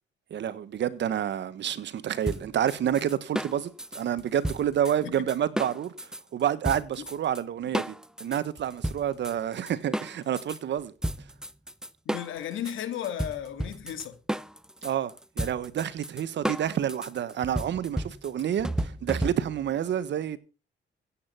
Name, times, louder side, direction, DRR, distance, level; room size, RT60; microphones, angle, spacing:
voice 1, 0.3-7.9 8.2-10.9 14.8-20.4, right 10 dB, 65° right, 1.4 m, -29 dB
sound 1, 2.3-6.2 6.6-7.4 7.7-10.6 11.0-19.7, right 1 dB, 5° right, 0.8 m, -33 dB
voice 2, 12.1-14.2, left 10 dB, 80° left, 2.4 m, -34 dB
16.0 x 8.8 x 5.7 m
cardioid pair, 90°, 20 cm